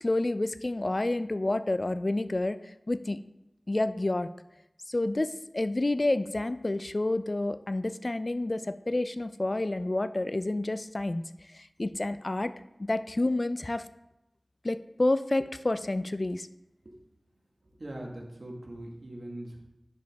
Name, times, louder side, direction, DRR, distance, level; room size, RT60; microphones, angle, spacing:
voice 1, 0.0-2.6 2.9-3.2 3.7-4.3 4.9-11.2 11.5-12.5 12.9-13.8 14.6-16.5, left 2 dB, 40° left, 12 dB, 0.3 m, -29 dB
voice 2, 17.8-19.6, right 1 dB, 60° right, 0 dB, 1.5 m, -41 dB
10.5 x 4.9 x 3.5 m, 0.90 s
wide cardioid pair, 60°, 0 cm